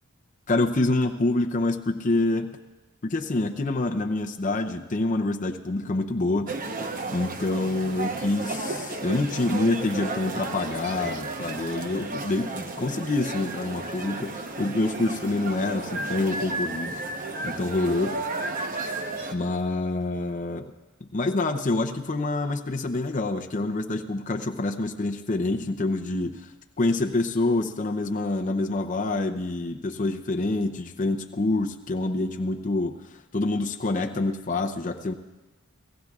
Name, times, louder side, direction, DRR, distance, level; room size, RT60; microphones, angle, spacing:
voice 1, 0.5-2.5 3.0-6.6 7.1-17.0 17.4-18.2 19.3-20.7 21.0-26.5 26.8-33.0 33.3-35.1, left 2 dB, 35° left, 5 dB, 0.6 m, -26 dB
sound 1, 6.5-19.3, right 2 dB, 40° right, 0.9 m, -33 dB
29.5 x 17.0 x 2.4 m, 1.1 s
head